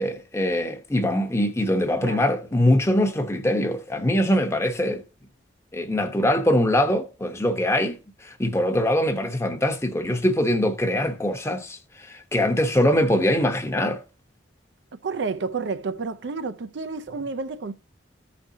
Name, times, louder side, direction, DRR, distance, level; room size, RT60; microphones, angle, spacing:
voice 1, 0.0-5.0 5.7-14.0, left 1 dB, 15° left, 0.8 m, -23 dB
voice 2, 15.0-17.7, right 4 dB, 70° right, 0.5 m, -30 dB
14.5 x 5.2 x 2.7 m
head